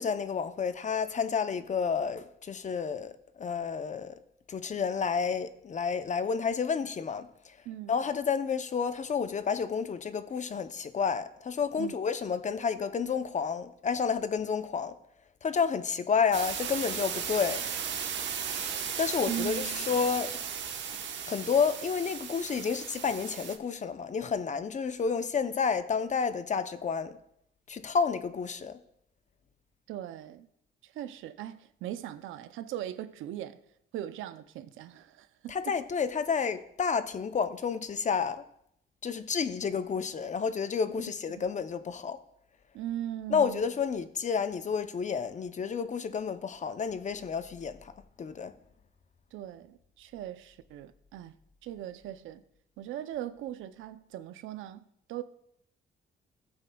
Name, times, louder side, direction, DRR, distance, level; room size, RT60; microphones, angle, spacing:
voice 1, 0.0-4.2 4.5-7.5 7.9-14.9 15.4-17.6 18.5-20.3 21.3-27.2 27.7-28.8 35.5-38.4 39.0-42.2 43.3-47.9 48.2-48.5, left 6 dB, 40° left, 0.7 m, -30 dB
sound 1, 16.3-23.6, right 7 dB, 65° right, 1.1 m, -36 dB
voice 2, 19.3-19.9 29.9-30.5 30.8-33.6 33.9-35.8 41.3-41.5 42.7-43.6 49.3-51.3 51.6-52.4 52.8-55.2, right 12 dB, 85° right, 0.6 m, -39 dB
15.0 x 8.8 x 2.3 m
cardioid pair, 90°, 20 cm